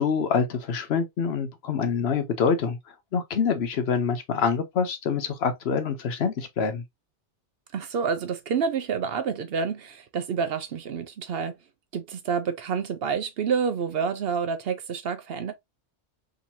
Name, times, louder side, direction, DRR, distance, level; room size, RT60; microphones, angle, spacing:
voice 1, 0.0-6.8, left 6 dB, 65° left, 0.9 m, -26 dB
voice 2, 7.7-11.6 11.9-15.5, right 6 dB, 65° right, 0.7 m, -28 dB
3.7 x 2.9 x 2.7 m
omnidirectional pair, 1.2 m